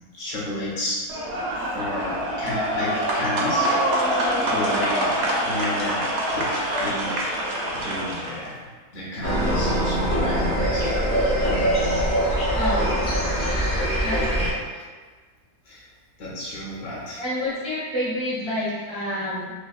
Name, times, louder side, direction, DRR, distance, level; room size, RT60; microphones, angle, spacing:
voice 1, 0.1-1.1 1.7-4.1 4.4-5.1 5.4-6.1 6.3-7.4 7.7-8.7 8.9-11.6 14.7-14.8 15.7-15.8 16.2-17.2, left 1 dB, 70° left, -6 dB, 1.2 m, -32 dB
sound 1, 1.1-8.5, right 1 dB, 60° right, 0.8 m, -25 dB
sound 2, 9.2-14.5, equal, 30° left, 0.4 m, -23 dB
voice 2, 12.5-13.0 14.0-14.5 17.2-19.5, left 1 dB, 35° right, -10 dB, 0.5 m, -28 dB
3.5 x 2.1 x 2.3 m, 1.4 s
omnidirectional pair, 1.6 m